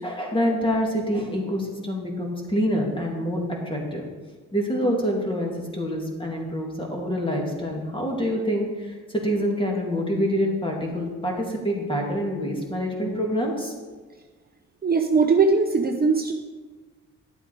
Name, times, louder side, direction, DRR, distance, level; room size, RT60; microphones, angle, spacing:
voice 1, 0.0-4.1 4.5-13.7, equal, 15° left, 0 dB, 2.6 m, -26 dB
voice 2, 14.8-16.3, right 4 dB, 30° right, 4 dB, 0.8 m, -20 dB
11.0 x 7.9 x 4.8 m, 1.4 s
cardioid pair, 90°, 30 cm